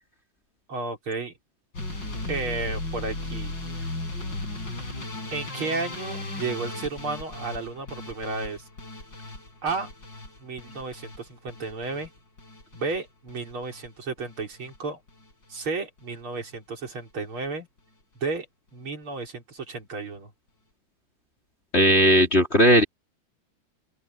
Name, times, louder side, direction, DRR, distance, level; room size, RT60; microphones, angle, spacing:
voice 1, 0.7-1.3 2.3-3.9 5.3-8.7 9.6-9.9 10.4-12.1 12.7-15.0 15.5-17.7 18.2-18.5 18.7-20.3, right 3 dB, 90° right, 4.9 m, -33 dB
sound 1, 1.7-13.9 14.2-14.8 15.1-15.7 16.0-16.2 16.5-16.6 16.9-17.0, left 2 dB, 60° left, 7.3 m, -37 dB
voice 2, 21.7-22.8, equal, 30° left, 3.7 m, -17 dB
open air
omnidirectional pair, 2.2 m